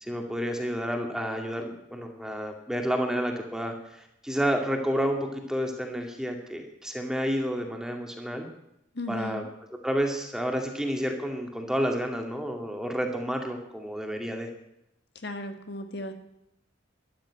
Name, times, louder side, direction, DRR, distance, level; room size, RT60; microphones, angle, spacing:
voice 1, 0.0-8.5 9.1-9.4 9.7-14.5, equal, 5° right, 3 dB, 2.2 m, -30 dB
voice 2, 8.9-9.5 15.2-16.1, left 1 dB, 55° left, 7 dB, 1.6 m, -35 dB
13.0 x 12.5 x 8.7 m, 0.81 s
head